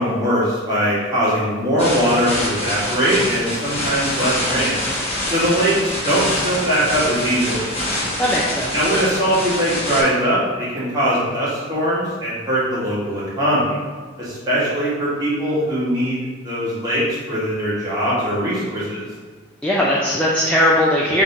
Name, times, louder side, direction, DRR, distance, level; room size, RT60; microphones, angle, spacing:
voice 1, 0.0-4.8 5.3-7.7 8.7-13.8 14.2-19.0, equal, 20° right, -10 dB, 1.5 m, -21 dB
sound 1, 1.8-10.0, left 1 dB, 30° left, 1.0 m, -25 dB
voice 2, 8.2-8.7 19.6-21.2, left 1 dB, 5° left, -6 dB, 0.4 m, -18 dB
3.8 x 3.0 x 4.3 m, 1.5 s
head